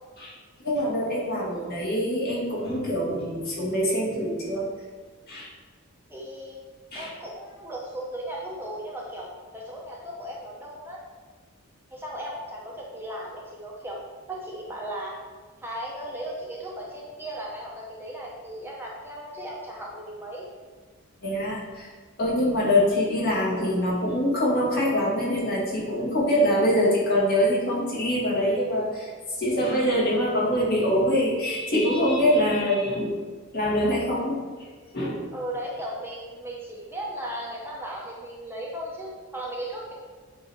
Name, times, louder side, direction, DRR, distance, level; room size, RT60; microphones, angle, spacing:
voice 1, 0.6-4.7 5.3-5.5 6.9-7.1 21.2-21.9 22.2-29.1 29.4-33.2 33.5-35.2, equal, 50° left, -5 dB, 1.9 m, -24 dB
voice 2, 6.1-6.6 6.9-9.3 9.5-11.0 11.9-14.0 14.3-15.2 15.6-20.5 35.3-39.9, right 1 dB, 10° right, -3 dB, 0.8 m, -36 dB
7.9 x 2.8 x 4.7 m, 1.5 s
head